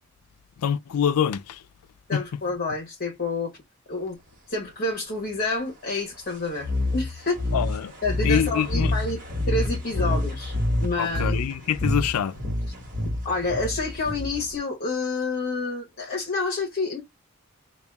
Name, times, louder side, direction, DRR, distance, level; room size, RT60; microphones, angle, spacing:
voice 1, 0.6-1.6 2.1-2.2 7.5-7.9 8.2-8.9 11.0-12.4, left 8 dB, 85° left, 0.4 m, -25 dB
voice 2, 2.1-3.5 3.9-4.2 4.5-7.5 8.0-9.2 9.5-11.4 13.2-17.0, left 3 dB, 40° left, 1.0 m, -28 dB
sound 1, 6.6-14.6, left 1 dB, 40° right, 1.2 m, -27 dB
5.2 x 2.3 x 2.2 m
head